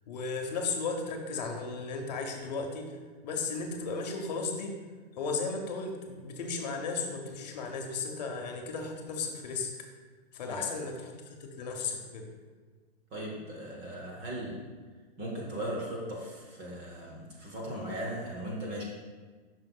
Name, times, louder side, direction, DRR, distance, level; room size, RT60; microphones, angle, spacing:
voice 1, 0.1-3.0 3.2-4.8 5.2-9.7 10.3-12.3, left 4 dB, 40° left, 2 dB, 0.8 m, -35 dB
voice 2, 13.1-14.7 15.2-18.8, right 1 dB, 15° right, -2 dB, 0.7 m, -38 dB
7.3 x 5.9 x 2.3 m, 1.4 s
hypercardioid pair, 160°, 32 cm